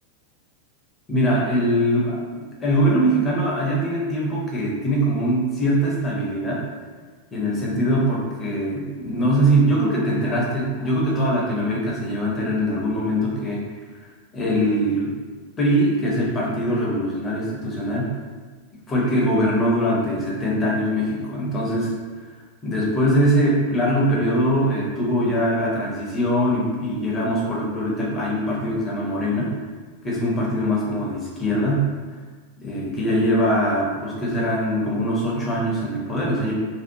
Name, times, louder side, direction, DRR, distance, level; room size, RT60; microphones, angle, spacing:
voice 1, 1.1-6.6 7.3-13.6 14.3-15.1 15.6-18.1 18.9-21.9 22.6-29.5 30.0-31.9 32.6-36.5, equal, 20° left, -5 dB, 0.8 m, -22 dB
2.6 x 2.3 x 2.7 m, 1.5 s
figure-of-eight pair, 90°, 0 cm